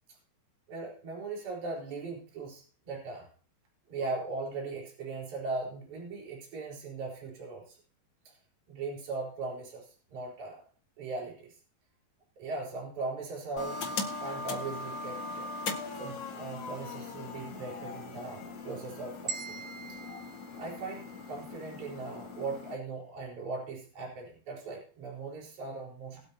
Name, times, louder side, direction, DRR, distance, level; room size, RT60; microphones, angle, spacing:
voice 1, 0.7-3.3 3.9-7.8 8.3-8.4 8.7-10.6 11.0-11.5 12.4-13.8 14.2-15.5 16.0-19.6 20.5-26.2, right 3 dB, 45° right, -2 dB, 5.5 m, -39 dB
sound 1, 13.6-22.7, left 3 dB, 65° left, 1.1 m, -40 dB
sound 2, 19.3-21.5, right 5 dB, 75° right, 1.4 m, -42 dB
21.0 x 8.4 x 2.8 m, 0.41 s
omnidirectional pair, 4.8 m